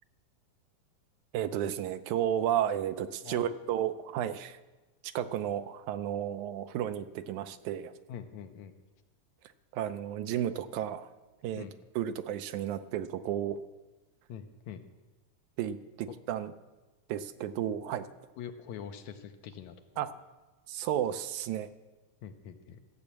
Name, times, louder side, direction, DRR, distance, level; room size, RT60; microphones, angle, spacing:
voice 1, 1.3-4.6 5.2-7.9 9.7-11.1 11.4-11.7 12.0-13.6 15.6-16.5 17.1-18.1 20.0-20.1 20.7-21.7, right 10 dB, 80° right, 10 dB, 2.0 m, -32 dB
voice 2, 8.1-8.7 11.6-11.7 14.3-14.8 16.1-16.2 18.4-19.8 22.2-22.8, left 8 dB, 75° left, 7 dB, 2.0 m, -44 dB
14.0 x 7.0 x 8.4 m, 1.1 s
omnidirectional pair, 3.5 m